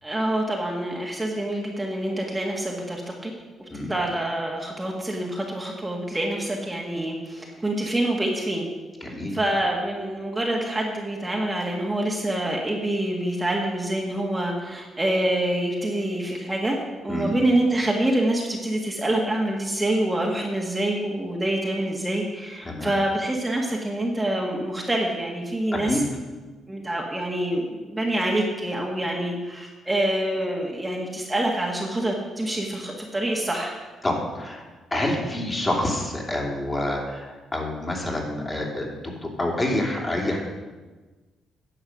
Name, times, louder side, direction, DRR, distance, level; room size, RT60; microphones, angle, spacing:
voice 1, 0.0-3.3 3.9-8.7 9.3-16.8 17.0-26.0 26.7-33.7, right 1 dB, 15° right, -1 dB, 1.6 m, -26 dB
voice 2, 9.0-9.4 17.1-17.4 22.6-22.9 25.7-26.0 34.0-34.6 34.9-40.4, left 1 dB, 25° left, 0 dB, 2.9 m, -27 dB
10.5 x 7.1 x 6.3 m, 1.3 s
cardioid pair, 90°, 0 cm